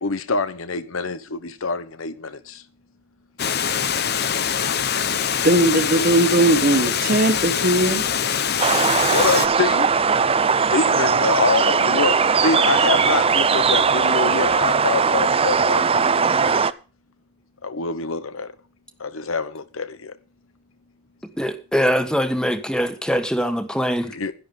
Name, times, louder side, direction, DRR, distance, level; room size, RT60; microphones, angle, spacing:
voice 1, 0.0-2.6 9.1-9.9 10.7-16.6 17.6-18.5 19.0-20.2 24.1-24.3, left 4 dB, 80° left, 1.0 m, -25 dB
Water, 3.4-9.5, left 8 dB, 50° left, 0.9 m, -23 dB
voice 2, 5.4-8.1, right 1 dB, 45° right, 1.4 m, -18 dB
sound 1, 8.6-16.7, right 5 dB, 25° right, 0.6 m, -19 dB
voice 3, 21.4-24.1, equal, 5° left, 1.4 m, -22 dB
11.0 x 11.0 x 5.3 m
head